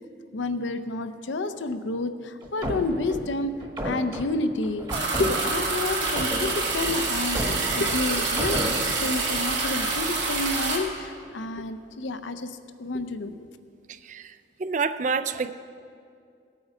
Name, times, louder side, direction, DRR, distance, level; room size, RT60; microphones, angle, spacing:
voice 1, 0.3-3.5 3.8-4.9 5.2-7.4 7.7-8.6 8.9-13.5, left 2 dB, 80° left, 10 dB, 0.6 m, -29 dB
sound 1, 2.4-5.7 6.1-8.8, equal, 25° right, 1.2 m, -32 dB
sound 2, 4.9-10.8, right 3 dB, 75° right, 2.5 m, -27 dB
voice 2, 14.0-15.5, right 5 dB, 40° right, 12 dB, 0.4 m, -28 dB
18.0 x 8.6 x 4.9 m, 2.4 s
head